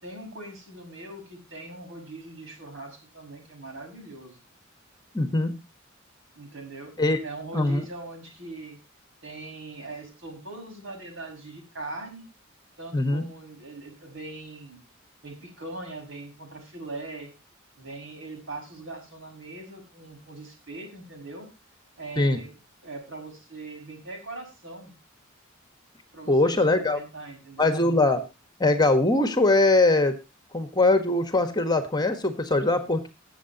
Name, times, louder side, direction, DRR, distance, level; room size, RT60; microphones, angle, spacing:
voice 1, 0.0-4.4 6.3-6.9 7.2-8.8 9.2-12.2 12.8-14.8 15.2-17.3 17.8-21.5 22.0-22.5 22.8-24.9 26.1-27.7, right 2 dB, 65° right, 3 dB, 6.3 m, -41 dB
voice 2, 5.1-5.6 7.0-7.2 7.5-7.8 12.9-13.2 22.2-22.4 26.3-27.0 27.6-28.2 28.6-30.2 30.5-33.1, left 2 dB, 20° left, 9 dB, 1.4 m, -22 dB
22.0 x 7.5 x 2.9 m, 0.27 s
head